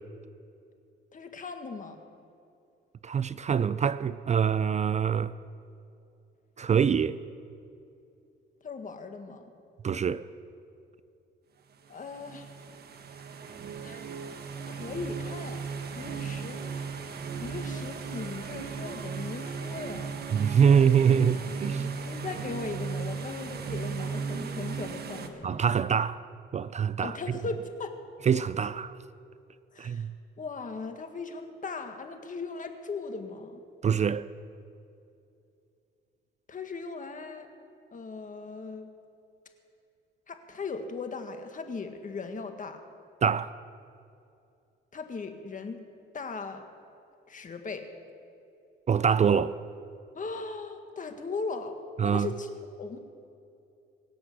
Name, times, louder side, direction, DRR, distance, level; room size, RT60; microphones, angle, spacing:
voice 1, 1.1-2.0 8.6-9.4 11.9-12.5 13.8-14.0 14.7-15.6 16.0-16.8 17.4-20.1 22.0-25.5 27.0-28.0 29.7-30.1 30.4-33.6 36.5-37.5 37.9-38.9 40.3-42.8 44.9-45.8 46.1-46.6 47.3-47.8 50.1-51.7 52.0-52.5 52.8-53.0, left 4 dB, 40° left, 1.7 m, -38 dB
voice 2, 3.0-5.3 6.6-7.2 9.8-10.3 20.3-21.9 25.4-26.2 26.5-27.2 28.3-28.9 29.8-30.1 33.8-34.2 43.2-43.5 48.9-49.5 52.0-52.3, right 7 dB, 35° right, 0.4 m, -24 dB
sound 1, 11.8-25.3, right 5 dB, 55° right, 1.4 m, -36 dB
23.5 x 7.8 x 6.7 m
cardioid pair, 90°, 20 cm